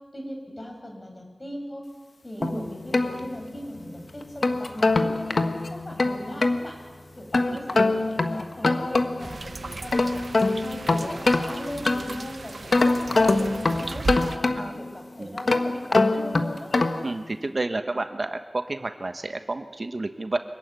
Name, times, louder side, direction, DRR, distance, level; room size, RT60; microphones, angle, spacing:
voice 1, 0.1-1.8 2.2-5.4 5.7-6.8 7.2-10.3 10.6-14.1 14.4-16.7, equal, 35° left, 3 dB, 5.5 m, -38 dB
sound 1, 2.4-3.8 4.2-6.6 7.3-9.4 9.7-12.2 12.7-14.9 15.4-17.1, left 2 dB, 80° left, 1.3 m, -24 dB
voice 2, 7.5-7.8 14.6-14.7 15.2-15.4 17.0-20.4, right 2 dB, 55° right, 8 dB, 1.3 m, -31 dB
sound 2, 9.2-14.4, right 3 dB, 80° right, 0.7 m, -36 dB
25.0 x 15.0 x 9.7 m, 1.4 s
wide cardioid pair, 70°, 0 cm